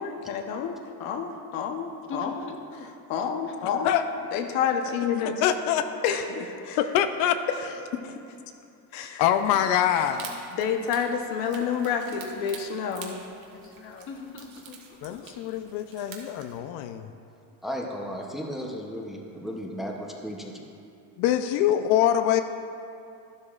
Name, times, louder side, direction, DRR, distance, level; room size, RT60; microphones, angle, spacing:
voice 1, 0.0-2.4 3.1-3.9 4.3-5.4 6.0-6.8 8.0-8.1 8.9-9.2 10.5-13.2, left 7 dB, 70° left, 5 dB, 1.0 m, -29 dB
voice 2, 2.1-2.9 3.4-3.6 4.8-4.9 9.5-10.5 13.5-15.6 18.2-18.5, left 4 dB, 35° left, 3 dB, 1.0 m, -42 dB
voice 3, 5.2-5.9 6.8-7.4 9.2-10.4 15.0-17.1 21.2-22.4, left 10 dB, 85° left, 8 dB, 0.6 m, -24 dB
sound 1, 9.4-16.6, right 6 dB, 70° right, 1.7 m, -47 dB
voice 4, 17.6-20.6, equal, ahead, -1 dB, 0.7 m, -35 dB
13.0 x 11.5 x 2.4 m, 2.5 s
cardioid pair, 165°, 36 cm